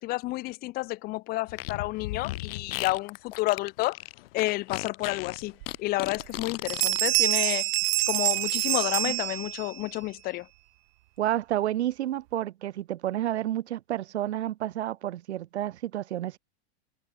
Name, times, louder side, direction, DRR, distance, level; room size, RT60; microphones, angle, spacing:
voice 1, 0.0-4.0 4.3-7.7 8.1-10.5, left 19 dB, 25° left, 1.0 m, -30 dB
Fart, 1.5-7.0, left 17 dB, 60° left, 1.5 m, -36 dB
Bell, 5.6-5.7 6.2-6.4 6.7-9.8, right 24 dB, 45° right, 0.9 m, -26 dB
voice 2, 11.2-16.4, right 13 dB, 75° right, 4.7 m, -30 dB
supercardioid pair, 155°, 33 cm